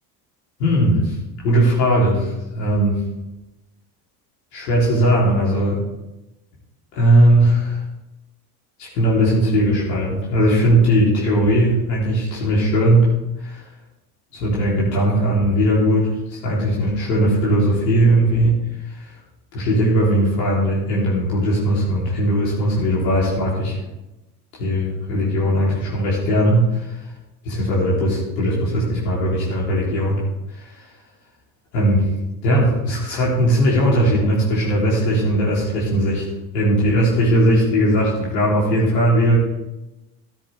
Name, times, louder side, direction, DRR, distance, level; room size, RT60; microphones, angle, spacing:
voice 1, 0.6-1.2 1.4-2.9 4.5-5.8 6.9-7.8 8.8-13.1 13.4-13.6 14.3-18.6 18.9-19.1 19.5-23.8 24.6-27.0 27.4-30.2 30.5-30.7 31.7-32.0 32.4-36.2 36.5-39.4, right 1 dB, 80° left, -6 dB, 3.6 m, -18 dB
13.0 x 9.7 x 3.5 m, 1.0 s
hypercardioid pair, 80°, 48 cm